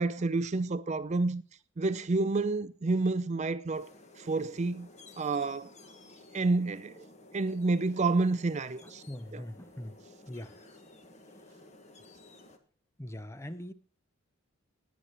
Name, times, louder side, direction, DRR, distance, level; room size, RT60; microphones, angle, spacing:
voice 1, 0.0-1.4 1.8-3.9 4.2-4.9 5.2-5.7 6.3-7.1 7.3-9.0, right 3 dB, 30° right, 0.4 m, -29 dB
sound 1, 3.7-12.6, left 2 dB, 30° left, 1.4 m, -54 dB
voice 2, 8.8-10.0 10.3-10.6 13.0-13.7, left 1 dB, 10° left, 0.6 m, -42 dB
20.5 x 8.2 x 3.0 m
head